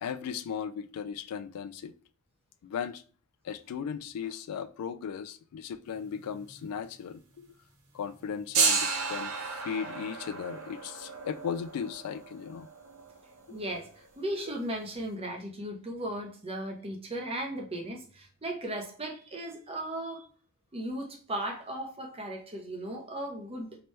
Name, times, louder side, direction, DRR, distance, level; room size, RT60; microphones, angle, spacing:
voice 1, 0.0-1.9 2.6-3.0 3.4-7.5 7.9-12.7 13.5-13.6, left 7 dB, 80° left, 0.3 m, -37 dB
sound 1, 5.9-6.8 7.0-7.1 8.0-14.7, right 5 dB, 70° right, 0.8 m, -33 dB
voice 2, 13.5-13.9 14.2-20.3 20.7-23.8, right 1 dB, 25° right, 0.8 m, -36 dB
3.2 x 2.9 x 3.2 m
head